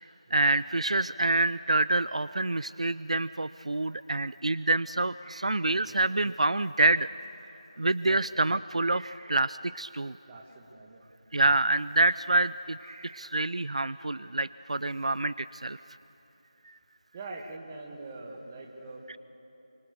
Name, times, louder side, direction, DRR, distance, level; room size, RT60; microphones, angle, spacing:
voice 1, 0.3-7.1 7.8-10.2 11.3-15.8, right 2 dB, 65° right, 16 dB, 0.5 m, -27 dB
voice 2, 10.3-11.1 17.1-19.2, right 2 dB, 15° right, 1 dB, 2.0 m, -44 dB
29.0 x 25.5 x 6.9 m, 3.0 s
figure-of-eight pair, 170°, 4 cm